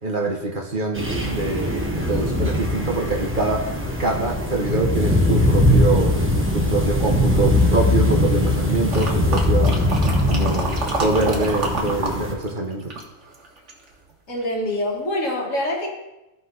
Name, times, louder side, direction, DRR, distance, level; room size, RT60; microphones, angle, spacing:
voice 1, 0.0-6.1 6.5-9.8 10.3-12.9, right 2 dB, 40° right, 0 dB, 1.3 m, -24 dB
sound 1, 1.0-12.3, left 1 dB, 10° right, 1.0 m, -21 dB
sound 2, 8.9-12.2 12.4-13.9 14.4-14.5, right 2 dB, 65° right, 1.7 m, -28 dB
voice 2, 14.3-15.9, left 1 dB, 75° left, -1 dB, 2.2 m, -25 dB
14.5 x 4.9 x 4.0 m, 0.97 s
omnidirectional pair, 1.3 m